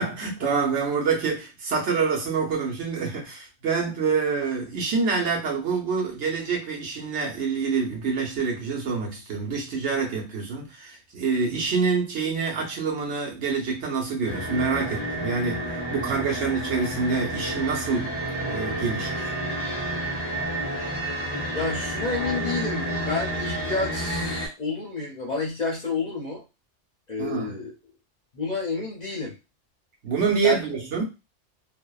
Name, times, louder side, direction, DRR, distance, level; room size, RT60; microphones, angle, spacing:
voice 1, 0.0-18.1 18.4-19.3 27.2-27.6 30.0-31.0, right 5 dB, 75° right, 1.1 m, -26 dB
sound 1, 14.2-24.5, right 1 dB, 10° right, 0.8 m, -30 dB
voice 2, 21.5-26.4 27.1-27.7 28.3-29.4 30.4-30.6 31.0-31.1, left 4 dB, 50° left, 0.5 m, -30 dB
2.6 x 2.1 x 2.3 m
omnidirectional pair, 1.2 m